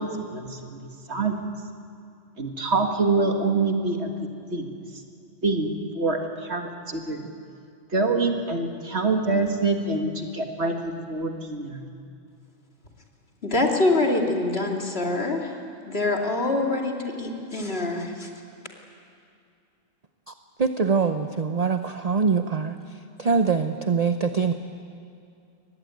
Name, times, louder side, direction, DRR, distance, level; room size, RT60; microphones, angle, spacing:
voice 1, 0.0-1.4 2.4-4.1 4.5-4.7 5.4-7.3 7.9-11.8, right 3 dB, 55° right, 4 dB, 2.0 m, -26 dB
voice 2, 13.4-15.5 15.8-18.3, left 2 dB, 50° left, 1 dB, 2.9 m, -25 dB
voice 3, 20.6-22.8 23.2-24.5, right 5 dB, 35° right, 8 dB, 0.7 m, -23 dB
23.5 x 20.0 x 9.3 m, 2.4 s
omnidirectional pair, 1.4 m